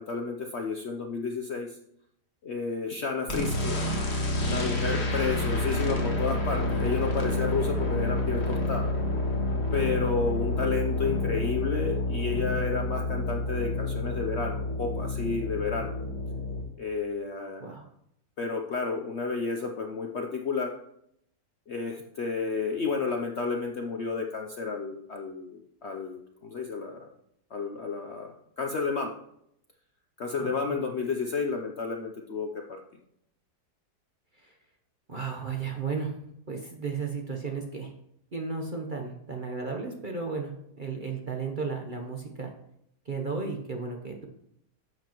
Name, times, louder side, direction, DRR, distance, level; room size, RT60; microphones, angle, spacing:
voice 1, 0.0-1.8 2.4-3.8 4.4-8.9 9.7-15.9 16.8-17.7 18.4-20.7 21.7-27.1 27.5-29.2 30.2-32.8, left 4 dB, 60° left, 3 dB, 0.7 m, -31 dB
sound 1, 3.3-16.6, left 2 dB, 40° left, 1.7 m, -29 dB
voice 2, 35.1-36.2 36.5-37.9 38.3-40.5 40.8-42.5 43.0-44.3, right 4 dB, 40° right, 1 dB, 0.8 m, -34 dB
11.0 x 7.8 x 3.0 m, 0.76 s
omnidirectional pair, 1.8 m